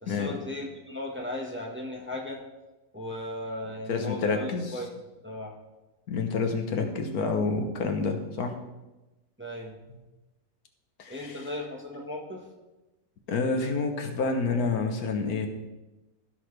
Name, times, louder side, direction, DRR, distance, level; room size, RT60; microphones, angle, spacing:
voice 1, 0.0-2.4 2.9-4.9 5.2-5.6 9.4-9.8 11.1-12.4, left 1 dB, 10° right, -1 dB, 1.3 m, -36 dB
voice 2, 3.9-4.8 6.1-8.5 11.0-11.4 13.3-15.5, left 4 dB, 85° left, 4 dB, 1.6 m, -28 dB
15.5 x 6.3 x 3.3 m, 1.0 s
omnidirectional pair, 1.6 m